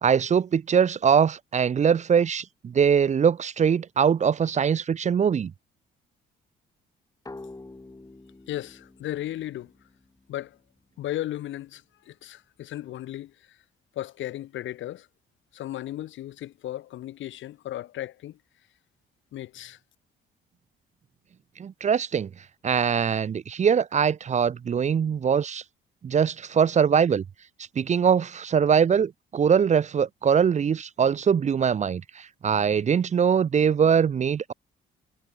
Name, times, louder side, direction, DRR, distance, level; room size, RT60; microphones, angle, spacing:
voice 1, 0.0-5.5 21.6-22.3 22.6-25.6 26.0-27.2 27.8-32.0 32.4-34.5, right 7 dB, 35° right, 0.6 m, -22 dB
sound 1, 7.3-10.7, left 2 dB, 15° left, 3.4 m, -47 dB
voice 2, 8.5-9.7 10.3-10.6 11.0-13.3 14.0-15.1 15.5-18.4 19.3-19.8, left 13 dB, 75° left, 0.9 m, -35 dB
cardioid pair, 90°, 20 cm